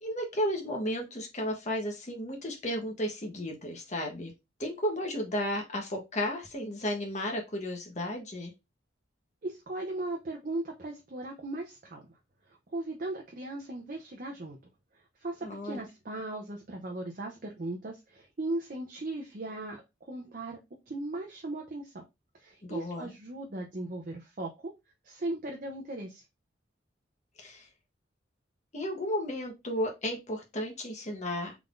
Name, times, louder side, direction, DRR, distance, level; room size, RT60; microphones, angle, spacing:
voice 1, 0.0-4.3 4.6-8.5 15.4-15.8 22.6-23.2 27.4-27.7 28.7-31.6, equal, 40° left, 2 dB, 1.2 m, -33 dB
voice 2, 9.4-12.0 12.5-14.6 15.2-19.8 20.1-20.6 20.9-22.0 22.3-24.7 25.0-26.2, right 2 dB, 45° right, 1 dB, 0.6 m, -37 dB
3.7 x 3.6 x 2.5 m, 0.23 s
head